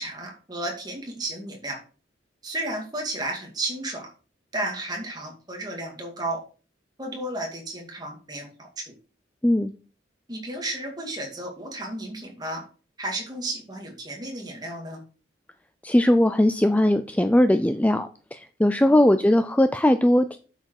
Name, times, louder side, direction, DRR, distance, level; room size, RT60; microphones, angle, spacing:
voice 1, 0.0-1.8 2.4-4.1 4.5-6.4 7.0-8.8 10.3-12.6 13.0-15.0, right 1 dB, 20° right, 1 dB, 2.3 m, -33 dB
voice 2, 15.8-20.4, left 1 dB, 10° left, 10 dB, 0.4 m, -20 dB
8.0 x 6.6 x 4.8 m, 0.38 s
head